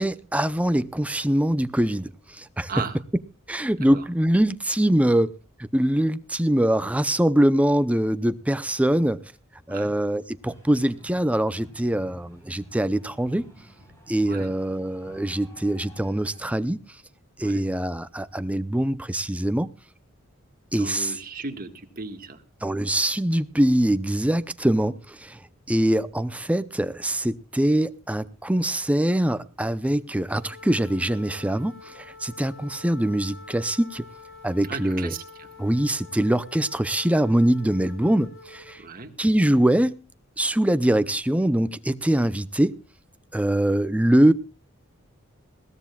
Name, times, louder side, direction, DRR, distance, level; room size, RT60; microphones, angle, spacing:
voice 1, 0.0-2.7 3.5-5.3 5.6-9.2 9.7-13.5 14.1-16.8 17.4-19.7 20.7-21.2 22.6-25.4 25.7-34.1 34.4-35.1 35.6-38.8 39.2-40.0 40.4-42.8 43.3-44.3, right 1 dB, 5° right, 0.6 m, -23 dB
sound 1, 10.4-16.6, equal, 15° left, 6.2 m, -51 dB
voice 2, 20.8-22.4 34.7-35.5 38.8-39.1, right 4 dB, 45° right, 1.7 m, -35 dB
sound 2, 30.3-38.8, left 3 dB, 65° left, 3.8 m, -46 dB
21.0 x 16.0 x 2.3 m
head